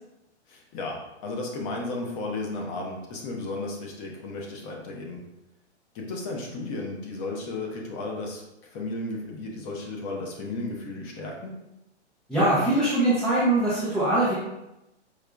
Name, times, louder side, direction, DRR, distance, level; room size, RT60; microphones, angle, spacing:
voice 1, 0.5-5.2 5.9-8.4 8.7-11.5, left 2 dB, 30° left, 0 dB, 0.7 m, -34 dB
voice 2, 12.3-14.3, right 1 dB, ahead, -10 dB, 0.4 m, -22 dB
4.8 x 2.8 x 2.3 m, 0.92 s
hypercardioid pair, 135°, 35 cm